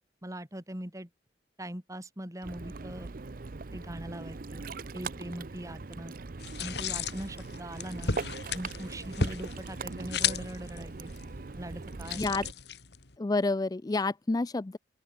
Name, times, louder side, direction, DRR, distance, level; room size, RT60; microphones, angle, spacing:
voice 1, 0.2-1.1 1.6-3.1 3.7-4.6 4.9-6.1 6.6-8.1 8.5-11.1 11.6-12.2, right 1 dB, 20° right, 2.8 m, -41 dB
Ocean, 2.4-12.5, right 3 dB, 50° right, 0.7 m, -41 dB
sound 1, 6.4-13.2, left 6 dB, 65° left, 1.8 m, -35 dB
voice 2, 13.2-14.8, left 3 dB, 20° left, 0.4 m, -29 dB
open air
head